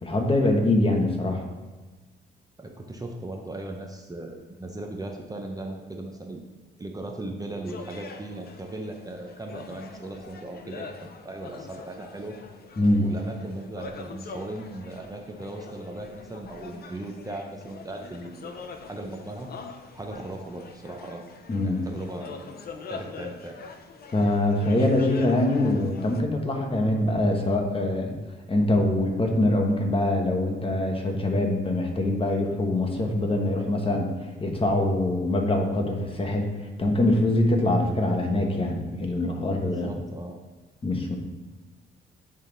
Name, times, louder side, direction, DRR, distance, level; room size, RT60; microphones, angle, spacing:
voice 1, 0.0-1.4 12.8-13.0 21.5-21.8 24.1-28.1 28.5-34.1 34.4-36.5 36.8-39.9 40.8-41.2, left 1 dB, 30° left, 2 dB, 1.2 m, -24 dB
voice 2, 2.6-6.4 6.8-12.4 13.0-19.5 19.9-21.2 21.6-22.3 22.9-23.6 39.6-40.4, right 2 dB, 20° right, 2 dB, 0.8 m, -37 dB
sound 1, 7.6-26.2, left 4 dB, 50° left, 0.7 m, -43 dB
9.9 x 3.6 x 4.0 m, 1.3 s
cardioid pair, 90°, 20 cm